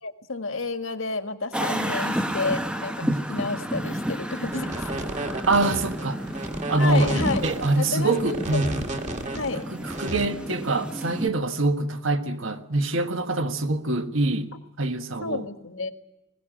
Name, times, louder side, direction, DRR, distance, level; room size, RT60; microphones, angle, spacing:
voice 1, 0.0-5.0 6.8-7.5 7.8-8.7 9.3-9.6 15.2-15.9, left 3 dB, 65° left, 1.7 m, -30 dB
sound 1, 1.5-11.3, equal, 5° right, 1.1 m, -31 dB
sound 2, 4.5-10.2, right 1 dB, 35° right, 2.2 m, -32 dB
voice 2, 5.5-6.2 6.7-7.1 7.4-8.6 9.8-14.5 14.8-15.4, right 2 dB, 65° right, 1.6 m, -24 dB
20.5 x 17.5 x 9.0 m
head